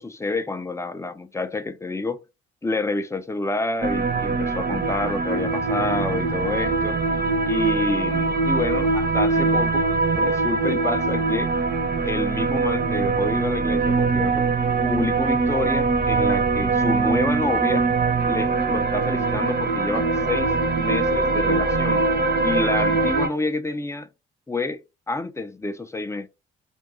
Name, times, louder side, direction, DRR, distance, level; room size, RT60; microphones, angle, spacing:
voice 1, 0.0-2.2 2.6-7.0 7.5-9.9 10.1-11.5 12.0-14.5 14.8-17.9 18.3-22.0 22.4-24.1 24.5-24.8 25.1-26.3, left 3 dB, 10° left, 0.4 m, -28 dB
sound 1, 3.8-23.3, right 3 dB, 30° right, 0.7 m, -22 dB
2.6 x 2.2 x 3.7 m
figure-of-eight pair, 40°, 33 cm